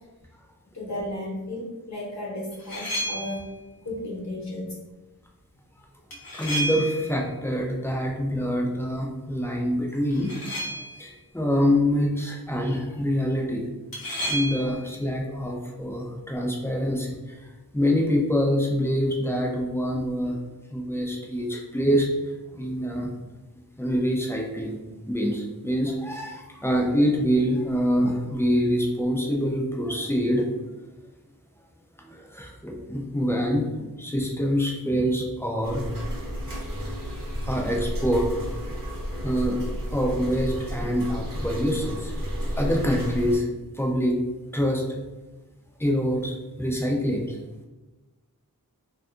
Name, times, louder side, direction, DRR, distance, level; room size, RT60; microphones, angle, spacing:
voice 1, 0.7-3.4 3.8-4.7, left 1 dB, 50° left, -4 dB, 0.9 m, -34 dB
sound 1, 2.5-3.5 6.1-7.3 10.1-11.1 13.9-14.9, equal, 80° left, 0.6 m, -32 dB
voice 2, 6.3-10.3 11.0-13.6 14.2-17.5 17.7-20.4 20.7-22.1 22.5-23.1 23.8-24.8 25.1-30.5 32.0-35.8 37.4-38.3 39.2-39.6 39.9-42.1 42.6-43.5 43.7-44.2 44.5-44.8 45.8-47.4, equal, 5° left, -1 dB, 0.4 m, -25 dB
sound 2, 35.6-43.4, equal, 65° right, 0.8 m, -32 dB
2.6 x 2.3 x 2.5 m, 1.1 s
wide cardioid pair, 50°, 35 cm